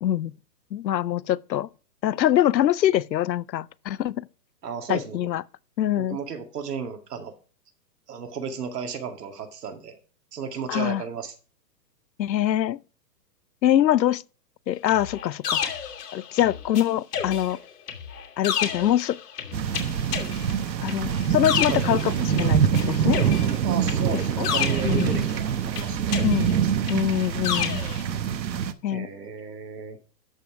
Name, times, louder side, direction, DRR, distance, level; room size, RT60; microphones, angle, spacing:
voice 1, 0.0-0.3 0.7-1.7 2.0-4.1 4.9-5.4 5.8-6.2 10.7-11.0 12.2-12.8 13.6-14.2 14.7-15.7 16.1-17.6 18.4-19.2 20.8-23.2 24.4-24.5 24.8-25.2 26.2-26.6 26.9-27.8 28.8-29.1, left 12 dB, 90° left, 0.7 m, -24 dB
voice 2, 4.6-5.3 6.0-7.3 8.1-10.0 10.3-11.3 21.7-21.8 23.6-26.2 28.9-30.0, right 6 dB, 65° right, 2.2 m, -34 dB
sound 1, 14.9-16.8 17.1-22.8 23.1-25.4 25.8-28.0, left 8 dB, 65° left, 2.7 m, -31 dB
sound 2, 19.5-28.7, right 8 dB, 90° right, 1.2 m, -25 dB
13.0 x 5.6 x 4.8 m
hypercardioid pair, 155°, 50 cm